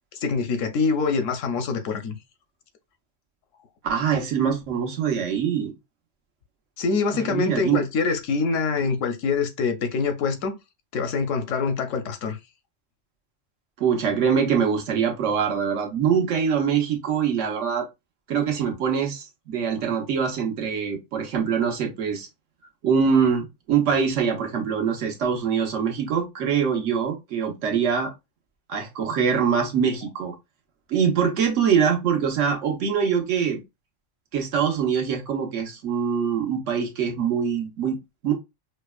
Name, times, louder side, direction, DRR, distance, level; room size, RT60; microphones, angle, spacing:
voice 1, 0.2-2.2 6.8-10.6 10.9-12.4, left 4 dB, 85° left, 1.1 m, -25 dB
voice 2, 3.8-5.7 7.1-7.8 13.8-17.9 18.3-22.3 22.8-28.1 28.7-30.3 30.9-33.6 34.3-38.0 38.2-38.3, right 7 dB, 80° right, 1.3 m, -23 dB
5.1 x 2.1 x 2.3 m
omnidirectional pair, 1.3 m